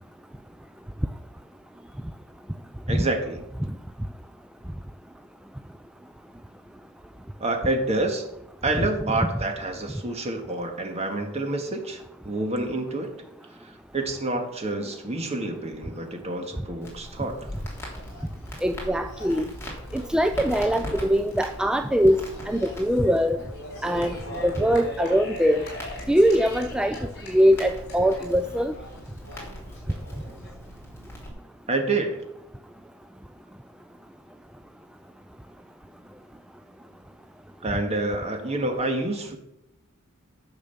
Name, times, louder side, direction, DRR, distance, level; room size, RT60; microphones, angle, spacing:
voice 1, 2.9-3.4 7.4-8.2 8.6-13.1 13.9-17.4 31.7-32.2 37.6-39.4, right 2 dB, 30° right, 4 dB, 1.7 m, -28 dB
Crackle, 16.8-31.3, equal, 10° left, 3.2 m, -41 dB
sound 1, 17.2-30.6, left 1 dB, 55° left, 4.4 m, -42 dB
voice 2, 18.6-19.5 19.9-23.4 23.8-25.7 26.1-27.0 27.3-28.7, equal, 5° right, 8 dB, 0.3 m, -22 dB
10.5 x 6.6 x 6.8 m, 0.84 s
head